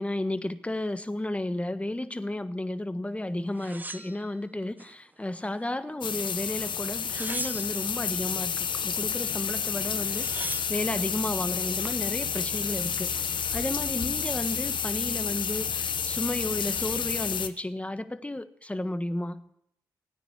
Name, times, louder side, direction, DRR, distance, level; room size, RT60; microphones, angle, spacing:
voice 1, 0.0-19.4, left 1 dB, 15° left, 1.3 m, -33 dB
sound 1, 3.6-4.9 5.4-6.1 6.9-8.0 9.5-9.6 9.8-10.8 11.5-12.0, right 2 dB, 20° right, 1.2 m, -40 dB
sound 2, 6.0-17.5, left 7 dB, 65° left, 1.0 m, -30 dB
18.0 x 9.7 x 7.2 m
cardioid pair, 55°, 9 cm